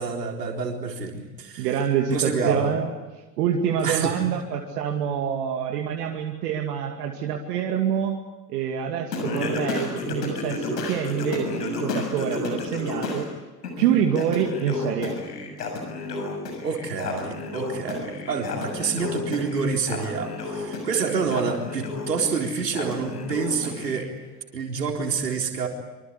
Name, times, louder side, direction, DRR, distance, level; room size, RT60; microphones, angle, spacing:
voice 1, 0.0-1.7 2.1-2.7 3.8-4.2 16.6-24.1 24.5-25.7, right 5 dB, 85° right, 2 dB, 4.2 m, -27 dB
voice 2, 1.6-2.9 3.4-8.1 8.5-13.3 13.8-15.2, right 8 dB, 70° right, 2 dB, 2.6 m, -26 dB
Singing, 9.1-13.2 13.6-24.0, left 3 dB, 80° left, 6.7 m, -32 dB
26.0 x 25.5 x 8.3 m, 1.2 s
figure-of-eight pair, 65°, 47 cm